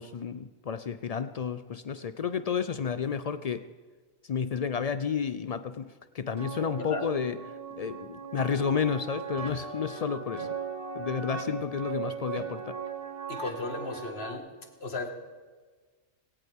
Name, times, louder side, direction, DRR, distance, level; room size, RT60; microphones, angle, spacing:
voice 1, 0.0-3.7 4.2-10.5 11.0-12.8, left 6 dB, 90° left, 11 dB, 0.3 m, -31 dB
sound 1, 6.4-14.3, right 6 dB, 35° right, 1.5 m, -38 dB
voice 2, 13.3-14.5 14.8-15.1, left 3 dB, 55° left, 4 dB, 2.0 m, -35 dB
19.5 x 17.5 x 3.6 m, 1.4 s
omnidirectional pair, 1.3 m